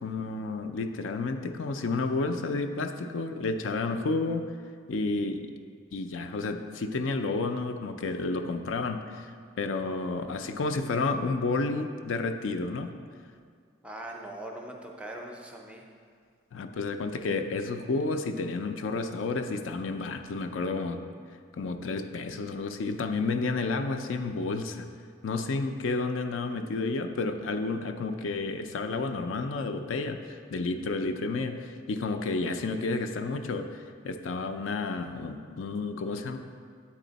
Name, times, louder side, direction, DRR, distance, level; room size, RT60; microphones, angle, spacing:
voice 1, 0.0-4.5 4.9-5.5 5.9-12.9 16.5-21.0 21.5-24.9 25.2-36.4, left 3 dB, 70° left, 7 dB, 0.4 m, -31 dB
voice 2, 13.8-15.8, right 1 dB, 5° right, 1 dB, 0.4 m, -41 dB
8.4 x 4.2 x 4.0 m, 2.1 s
head